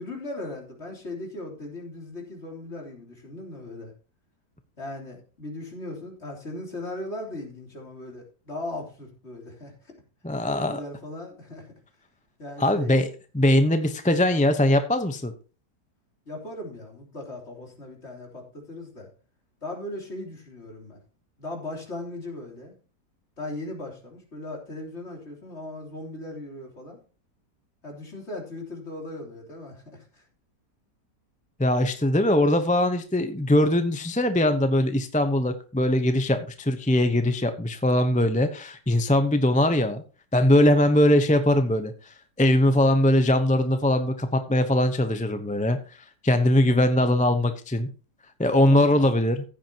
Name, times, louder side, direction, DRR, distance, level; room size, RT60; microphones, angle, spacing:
voice 1, 0.0-3.9 4.8-9.9 10.4-11.7 12.4-12.9 16.3-19.1 19.6-21.0 21.4-22.7 23.4-27.0 27.8-30.2 48.6-49.0, left 2 dB, 40° left, 0 dB, 3.6 m, -38 dB
voice 2, 10.2-10.8 12.6-13.1 13.3-15.3 31.6-40.0 40.3-41.9 42.4-45.8 46.2-47.9 48.4-49.4, left 1 dB, 10° left, 8 dB, 0.5 m, -21 dB
15.0 x 9.1 x 2.9 m, 0.36 s
omnidirectional pair, 1.8 m